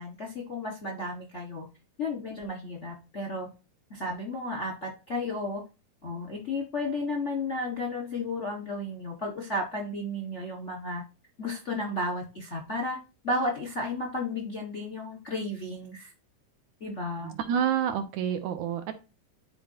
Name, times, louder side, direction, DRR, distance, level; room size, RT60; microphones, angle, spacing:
voice 1, 0.0-1.7 2.0-3.5 3.9-5.6 6.0-11.0 11.4-13.0 13.2-16.1 16.8-17.4, left 2 dB, 45° left, 1 dB, 0.9 m, -33 dB
voice 2, 17.2-18.9, right 8 dB, 75° right, 8 dB, 1.9 m, -28 dB
11.5 x 4.5 x 2.8 m, 0.30 s
omnidirectional pair, 3.9 m